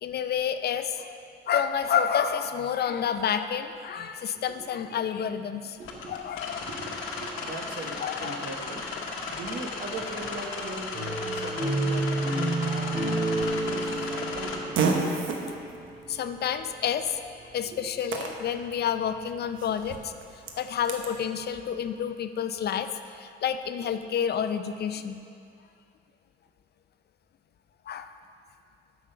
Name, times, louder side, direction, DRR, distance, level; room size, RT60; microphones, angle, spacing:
voice 1, 0.0-1.1 1.5-5.8 6.1-6.7 8.0-8.4 16.1-17.2 17.5-20.1 20.6-25.2 27.9-28.1, left 8 dB, 55° left, 9 dB, 0.5 m, -29 dB
sound 1, 5.8-14.6, left 4 dB, 90° left, 1.0 m, -35 dB
voice 2, 5.8-6.2 6.5-8.9 9.3-15.0, right 2 dB, 55° right, 1 dB, 1.4 m, -40 dB
sound 2, 10.9-15.8, right 2 dB, 30° right, 1.8 m, -29 dB
Fart, 13.4-21.1, right 4 dB, 80° right, 1.0 m, -34 dB
8.6 x 6.4 x 5.7 m, 2.5 s
cardioid pair, 90°, 20 cm